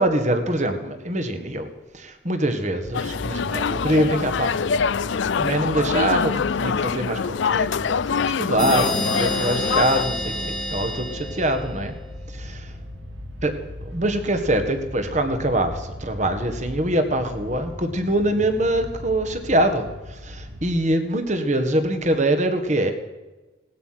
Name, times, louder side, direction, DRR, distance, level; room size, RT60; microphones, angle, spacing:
voice 1, 0.0-1.7 1.9-4.9 5.4-11.9 12.3-12.6 13.4-13.6 13.9-22.9, right 1 dB, 35° right, 7 dB, 1.7 m, -24 dB
sound 1, 2.8-20.7, left 1 dB, 65° right, 2.2 m, -38 dB
sound 2, 2.9-10.0, left 6 dB, 65° left, 0.4 m, -24 dB
sound 3, 8.6-12.1, left 1 dB, ahead, 1.7 m, -28 dB
18.0 x 12.5 x 5.9 m, 1.1 s
head